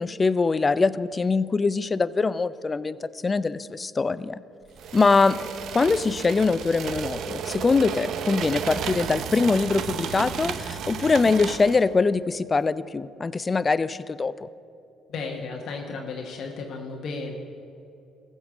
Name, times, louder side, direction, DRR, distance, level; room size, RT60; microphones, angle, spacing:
voice 1, 0.0-4.4 4.9-5.4 5.7-14.5, left 4 dB, 30° left, 17 dB, 0.4 m, -23 dB
sound 1, 4.8-11.9, right 7 dB, 70° right, 0.6 m, -33 dB
voice 2, 15.1-17.3, left 4 dB, 65° left, 1 dB, 1.1 m, -34 dB
14.5 x 5.5 x 7.2 m, 2.7 s
supercardioid pair, 65°, 0 cm